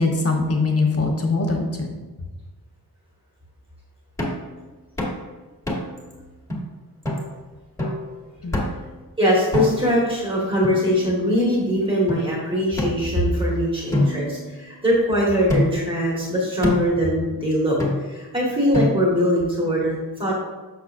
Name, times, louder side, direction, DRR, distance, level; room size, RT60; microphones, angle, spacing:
voice 1, 0.0-1.9 8.4-8.6, left 3 dB, 40° left, 1 dB, 1.1 m, -22 dB
sound 1, 4.2-4.5 5.0-5.2 5.7-6.0 6.5-6.6 7.1-7.3 7.8-8.1 8.5-8.9 9.5-10.0 10.6-11.4 12.1-12.2 12.8-13.5 13.9-15.0 15.5-15.9 16.6-17.0 17.8-18.3 18.7-19.3, left 1 dB, 5° left, 1.5 m, -26 dB
voice 2, 9.2-20.3, equal, 15° right, -5 dB, 1.7 m, -22 dB
6.7 x 6.0 x 2.5 m, 1.3 s
wide cardioid pair, 120°, 37 cm